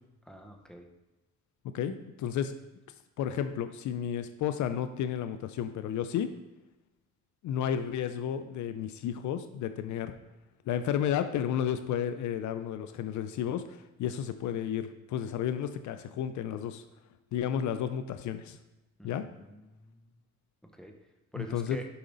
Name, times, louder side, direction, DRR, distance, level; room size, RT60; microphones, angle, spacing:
voice 1, 0.2-0.9 19.0-20.2 20.7-20.9 21.3-21.9, equal, ahead, 3 dB, 0.9 m, -46 dB
voice 2, 1.7-2.6 3.2-6.3 7.4-10.2 10.7-16.8 17.3-18.6 19.0-19.2 21.4-21.8, left 9 dB, 70° left, 10 dB, 0.5 m, -32 dB
6.9 x 5.0 x 3.9 m, 1.0 s
cardioid pair, 90°, 30 cm